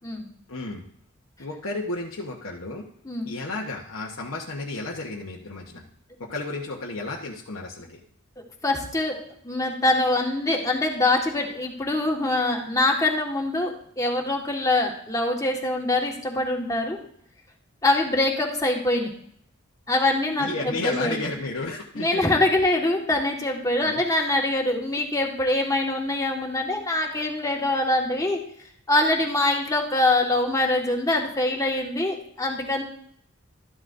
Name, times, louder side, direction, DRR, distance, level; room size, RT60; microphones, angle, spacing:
voice 1, 0.5-0.8 1.4-2.9 3.2-5.8 6.2-8.0 20.4-22.2 23.8-24.0, left 2 dB, 90° left, -3 dB, 1.1 m, -32 dB
voice 2, 8.6-9.2 9.4-17.0 17.8-19.1 19.9-21.2 22.0-28.4 28.9-32.8, left 2 dB, 15° left, 0 dB, 1.6 m, -24 dB
13.0 x 11.5 x 2.6 m, 0.67 s
head